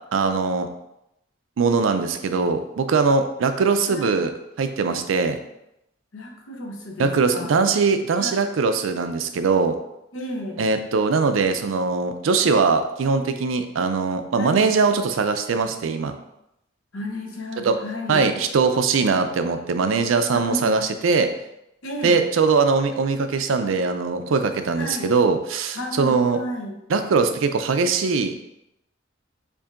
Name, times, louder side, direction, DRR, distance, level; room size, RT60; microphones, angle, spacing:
voice 1, 0.1-0.7 1.6-4.3 4.6-5.4 7.0-9.7 10.6-16.1 17.6-17.8 18.1-21.3 22.0-26.4 26.9-28.4, right 4 dB, 90° right, 8 dB, 0.4 m, -21 dB
voice 2, 3.9-4.2 6.1-7.7 8.1-8.4 10.1-10.6 14.4-14.7 16.9-18.3 20.3-20.8 21.8-22.2 24.8-25.1 25.7-26.8, left 1 dB, 85° left, 1 dB, 0.8 m, -33 dB
6.9 x 2.6 x 2.5 m, 0.84 s
head